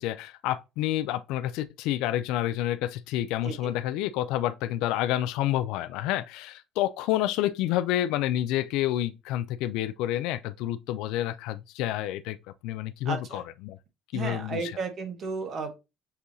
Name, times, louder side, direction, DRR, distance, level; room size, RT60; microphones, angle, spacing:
voice 1, 0.0-12.4 12.6-13.8 14.1-14.7, left 13 dB, 80° left, 0.3 m, -29 dB
voice 2, 13.0-13.4 14.1-15.8, right 4 dB, 45° right, 1.1 m, -33 dB
6.7 x 2.7 x 2.6 m
cardioid pair, 130°, 0 cm